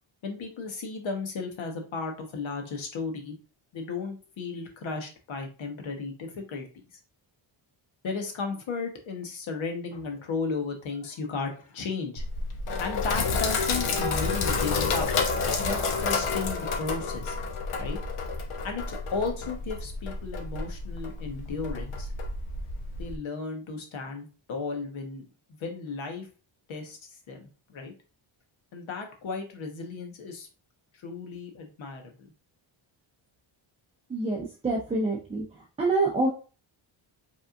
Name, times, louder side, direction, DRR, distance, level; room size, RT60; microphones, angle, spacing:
voice 1, 0.2-3.3 3.7-7.0 8.0-12.2 12.8-15.1 15.6-17.4 17.8-18.0 18.6-22.1 23.0-25.2 25.5-26.3 26.7-27.9 28.7-30.5 30.9-32.3, left 4 dB, 70° left, 3 dB, 1.2 m, -35 dB
Sink (filling or washing), 12.2-23.2, left 4 dB, 90° left, 1.0 m, -30 dB
voice 2, 34.1-35.4 35.8-36.3, right 2 dB, 15° right, -1 dB, 0.6 m, -26 dB
5.3 x 3.5 x 2.5 m, 0.35 s
wide cardioid pair, 175°, 49 cm